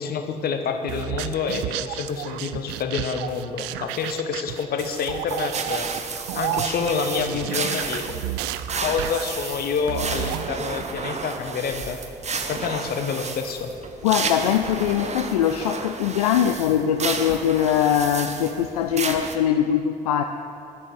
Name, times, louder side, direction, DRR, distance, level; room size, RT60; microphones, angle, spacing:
voice 1, 0.0-5.9 6.3-8.2 8.7-12.0 12.5-13.7, left 5 dB, 55° left, 6 dB, 1.2 m, -28 dB
sound 1, 0.9-10.5, right 13 dB, 65° right, 0.5 m, -32 dB
sound 2, 5.3-19.4, right 4 dB, 35° right, 1.2 m, -32 dB
voice 2, 14.0-20.2, left 9 dB, 75° left, 6 dB, 0.5 m, -22 dB
11.0 x 9.9 x 7.3 m, 2.6 s
figure-of-eight pair, 45°, 19 cm